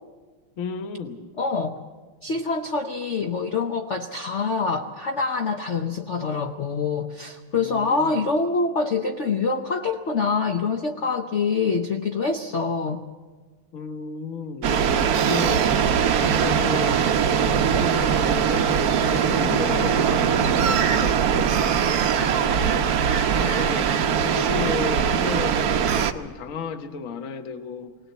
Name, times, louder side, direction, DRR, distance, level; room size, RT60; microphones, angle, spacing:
voice 1, 0.6-1.2 7.6-8.3 13.7-21.7 22.2-22.9 23.3-28.0, left 5 dB, 45° left, 7 dB, 1.4 m, -34 dB
voice 2, 1.4-1.8 2.2-13.0, left 4 dB, 70° left, 5 dB, 0.6 m, -25 dB
sound 1, 14.6-26.1, right 7 dB, 60° right, 1.1 m, -21 dB
20.0 x 18.5 x 8.2 m, 1.4 s
omnidirectional pair, 2.4 m